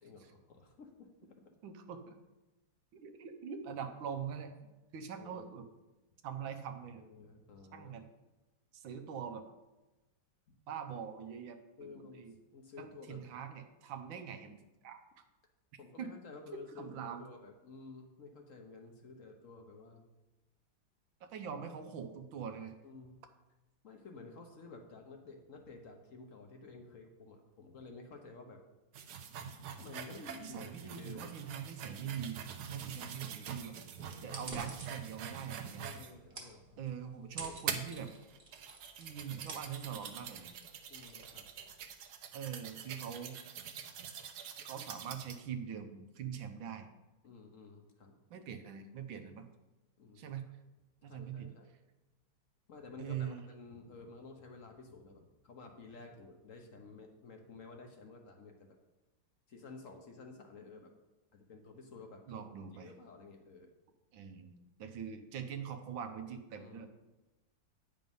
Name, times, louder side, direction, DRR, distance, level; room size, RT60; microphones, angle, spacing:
voice 1, 0.0-1.5 5.2-5.5 7.1-7.9 11.8-13.2 15.8-20.0 22.8-23.2 23.8-28.6 29.8-31.3 34.0-34.4 35.8-36.8 37.4-37.8 40.9-41.5 47.2-48.2 50.0-50.3 51.0-51.7 52.7-58.8 59.5-60.9 61.3-62.4 62.7-63.7 64.9-65.0 66.6-66.9, left 4 dB, 55° left, 4 dB, 1.1 m, -52 dB
voice 2, 1.6-2.2 2.9-5.7 6.2-7.0 7.7-8.1 8.7-9.4 10.7-12.3 12.8-15.0 16.0-16.1 16.5-17.3 21.2-22.7 30.4-33.7 34.2-36.0 36.8-38.1 39.0-40.5 42.3-43.4 44.6-46.9 48.3-49.5 50.1-50.5 51.0-51.5 53.0-53.4 62.3-62.9 64.1-66.9, right 8 dB, 80° right, 7 dB, 1.5 m, -43 dB
sound 1, 28.9-36.1 36.7-36.8 37.7-45.4, right 7 dB, 65° right, 1.1 m, -45 dB
sound 2, 34.3-42.0, right 2 dB, 30° right, 1.3 m, -51 dB
9.2 x 5.1 x 5.4 m, 1.1 s
omnidirectional pair, 2.1 m